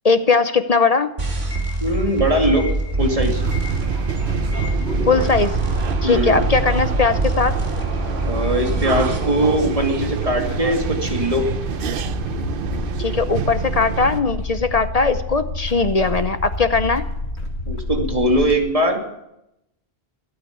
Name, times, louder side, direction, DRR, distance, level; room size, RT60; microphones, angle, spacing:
voice 1, 0.0-1.1 5.1-5.5 6.0-7.5 13.0-17.0, left 4 dB, 40° left, 11 dB, 0.8 m, -19 dB
sound 1, 1.2-10.2, right 2 dB, 75° right, 3.1 m, -25 dB
sound 2, 1.6-18.6, left 2 dB, 85° left, 1.9 m, -30 dB
voice 2, 1.8-2.7 3.0-3.4 6.0-6.4 8.3-11.4 17.7-19.0, right 1 dB, 35° right, 2 dB, 2.5 m, -20 dB
sound 3, 3.0-14.2, right 9 dB, 60° right, 0.8 m, -28 dB
16.0 x 9.2 x 8.3 m, 0.86 s
omnidirectional pair, 1.1 m